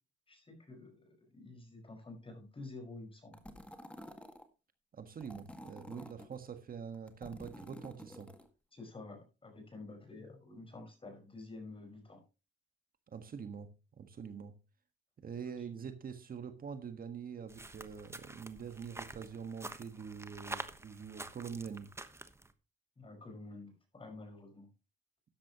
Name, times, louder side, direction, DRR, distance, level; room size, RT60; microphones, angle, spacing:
voice 1, 0.3-3.4 8.7-12.2 23.0-24.7, left 2 dB, 25° left, 5 dB, 5.4 m, -50 dB
sound 1, 3.3-4.5 5.2-6.4 6.9-8.5, equal, 5° left, 1.9 m, -50 dB
voice 2, 4.9-8.3 13.1-13.7 14.0-14.5 15.2-21.9, right 6 dB, 45° right, 8 dB, 1.6 m, -45 dB
sound 2, 17.5-22.5, right 2 dB, 15° right, 1.2 m, -47 dB
13.0 x 10.5 x 3.0 m, 0.30 s
cardioid pair, 90°, 20 cm